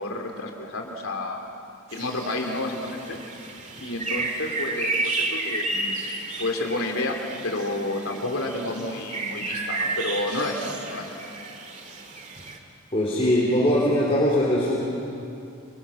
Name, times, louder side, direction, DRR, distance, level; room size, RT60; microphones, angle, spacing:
voice 1, 0.0-1.4 1.9-3.2 3.8-6.0 6.4-11.1, left 2 dB, 85° left, 2 dB, 3.4 m, -30 dB
sound 1, 1.9-12.6, right 2 dB, 35° right, 2.1 m, -32 dB
voice 2, 12.9-14.7, left 1 dB, 30° left, -5 dB, 3.7 m, -21 dB
29.0 x 24.5 x 6.5 m, 2.7 s
head